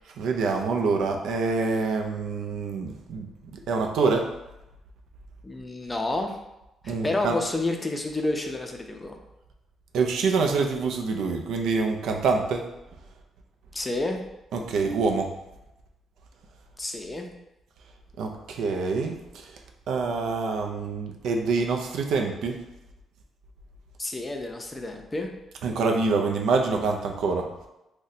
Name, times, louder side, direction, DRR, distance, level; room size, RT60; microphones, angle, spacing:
voice 1, 0.2-4.3 6.9-7.4 9.9-12.6 14.5-15.3 18.2-19.4 19.9-22.6 25.6-27.5, right 4 dB, 80° right, 3 dB, 0.4 m, -26 dB
voice 2, 5.4-6.4 6.8-9.1 13.7-14.2 16.8-17.3 24.0-25.3, left 2 dB, 20° left, 3 dB, 0.4 m, -29 dB
2.7 x 2.1 x 4.0 m, 0.92 s
cardioid pair, 90°, 0 cm